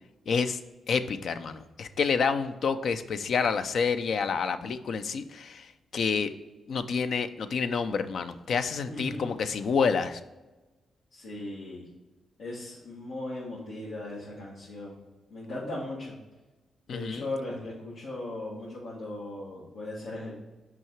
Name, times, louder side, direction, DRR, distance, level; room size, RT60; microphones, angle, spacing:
voice 1, 0.3-0.6 0.9-5.7 5.9-6.3 6.7-10.2 16.9-17.2, left 5 dB, 70° left, 10 dB, 0.5 m, -28 dB
voice 2, 8.9-9.3 11.1-11.8 12.4-15.0 15.3-16.2 16.9-20.3, left 2 dB, 85° left, -8 dB, 1.9 m, -37 dB
6.0 x 4.8 x 4.6 m, 1.1 s
cardioid pair, 85°, 0 cm